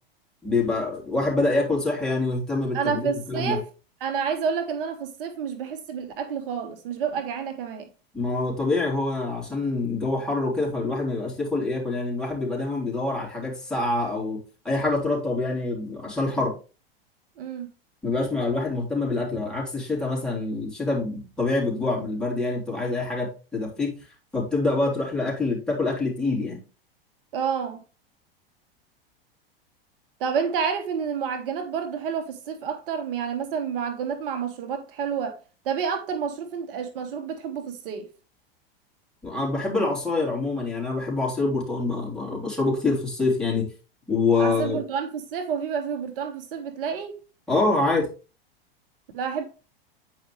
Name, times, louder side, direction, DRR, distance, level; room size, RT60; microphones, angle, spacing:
voice 1, 0.4-3.0 3.3-3.6 8.1-16.5 18.0-24.0 24.3-26.6 39.2-43.7 44.1-44.8 47.5-48.1, left 3 dB, ahead, 3.6 m, -26 dB
voice 2, 2.7-3.6 4.0-7.9 17.4-17.7 27.3-27.8 30.2-35.4 35.6-38.1 44.4-47.2 49.1-49.4, right 6 dB, 65° right, 1.4 m, -29 dB
9.2 x 5.0 x 3.2 m
hypercardioid pair, 105°, 30 cm